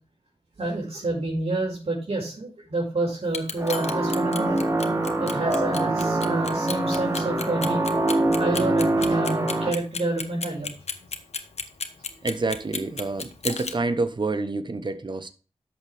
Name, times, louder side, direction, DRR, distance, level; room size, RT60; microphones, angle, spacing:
voice 1, 0.6-4.6 5.2-7.8 8.4-10.7, right 2 dB, 65° right, 4.9 m, -29 dB
Clock, 3.2-13.7, left 5 dB, 85° left, 1.1 m, -33 dB
sound 1, 3.6-9.7, right 2 dB, 30° right, 2.0 m, -24 dB
voice 2, 12.2-15.3, right 3 dB, 45° right, 1.1 m, -28 dB
11.5 x 7.3 x 3.5 m
wide cardioid pair, 65°, 11 cm